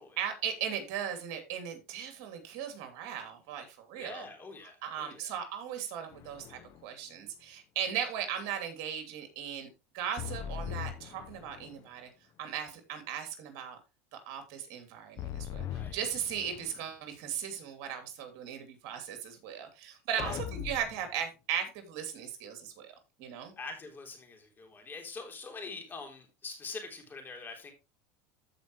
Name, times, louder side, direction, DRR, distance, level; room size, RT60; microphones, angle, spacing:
voice 1, 0.2-4.3 4.8-9.7 9.9-12.1 12.4-13.8 14.3-22.9 23.2-23.5, right 9 dB, 60° right, 6 dB, 2.7 m, -37 dB
voice 2, 4.0-5.3 15.7-16.0 20.2-20.3 23.6-27.7, left 4 dB, 25° left, 4 dB, 3.5 m, -44 dB
sound 1, 6.1-6.8 10.2-11.9 15.2-16.8 20.2-21.1, left 10 dB, 45° left, 0.8 m, -40 dB
14.5 x 5.2 x 3.1 m, 0.26 s
supercardioid pair, 115°, 8 cm